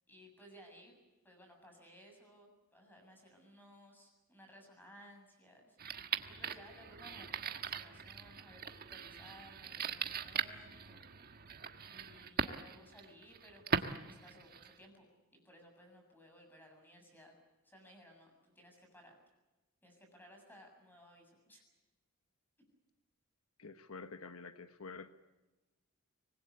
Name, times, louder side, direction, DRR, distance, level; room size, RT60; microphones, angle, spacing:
voice 1, 0.1-1.0 1.2-11.0 11.3-11.4 11.9-13.8 14.1-15.1 15.3-17.3 17.6-19.1 19.8-21.6, equal, 10° left, 3 dB, 7.5 m, -59 dB
sound 1, 5.8-14.9, right 6 dB, 45° right, 1.4 m, -41 dB
voice 2, 23.6-25.1, left 4 dB, 80° left, 9 dB, 1.2 m, -48 dB
25.5 x 20.5 x 8.4 m, 1.1 s
head